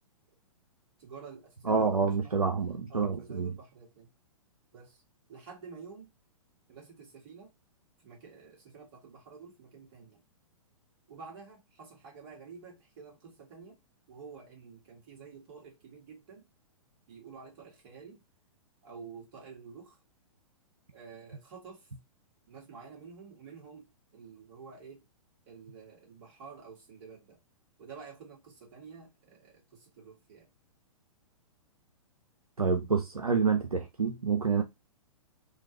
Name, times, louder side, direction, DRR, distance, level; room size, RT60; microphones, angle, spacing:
voice 1, 1.0-2.5 2.9-4.1 4.7-5.0 5.3-6.1 6.7-7.5 8.0-10.2 11.1-13.8 14.1-16.5 17.1-18.2 18.8-20.0 20.9-21.9 22.5-25.1 25.5-27.4 27.8-30.5, right 5 dB, 40° right, 1.8 m, -50 dB
voice 2, 1.6-3.5 32.6-34.6, right 5 dB, 90° right, 0.5 m, -28 dB
3.1 x 2.3 x 2.9 m
figure-of-eight pair, 115°, 18 cm